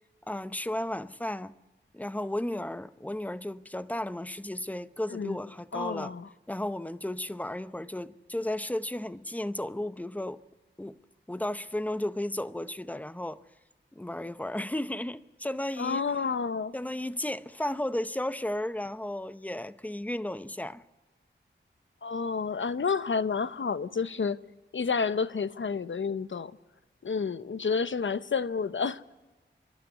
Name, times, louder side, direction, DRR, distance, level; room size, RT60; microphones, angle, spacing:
voice 1, 0.3-1.5 1.9-6.1 6.5-10.4 10.8-11.0 11.3-13.4 13.9-16.1 16.7-20.8, left 1 dB, 5° left, 0.7 m, -34 dB
voice 2, 5.7-6.3 15.8-16.7 22.0-24.4 24.7-26.5 27.0-29.0, left 5 dB, 75° left, 0.8 m, -30 dB
28.5 x 12.5 x 9.5 m
wide cardioid pair, 70°, 20 cm